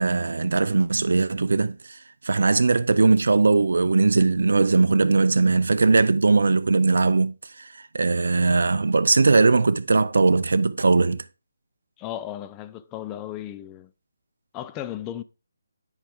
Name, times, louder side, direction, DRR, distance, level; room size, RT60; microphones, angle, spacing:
voice 1, 0.0-2.0 2.2-11.2, right 3 dB, 75° right, 0.5 m, -20 dB
voice 2, 12.0-13.9 14.5-15.2, left 12 dB, 15° left, 0.4 m, -35 dB
10.0 x 4.9 x 3.5 m
figure-of-eight pair, 160°, 0 cm